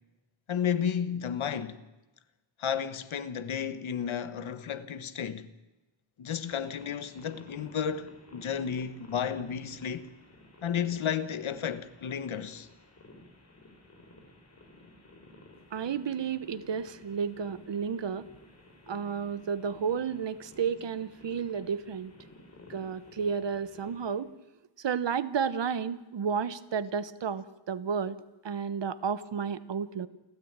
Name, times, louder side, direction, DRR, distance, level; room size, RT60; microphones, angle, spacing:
voice 1, 0.5-1.8 2.6-5.5 6.2-10.1 10.6-12.7, left 8 dB, 85° left, 1.4 m, -32 dB
sound 1, 6.4-24.1, left 2 dB, 30° left, 4.5 m, -53 dB
voice 2, 15.7-18.3 18.9-22.1 22.7-24.3 24.8-28.2 28.4-30.1, right 6 dB, 65° right, 1.2 m, -32 dB
29.0 x 13.0 x 8.9 m
wide cardioid pair, 175°, 47 cm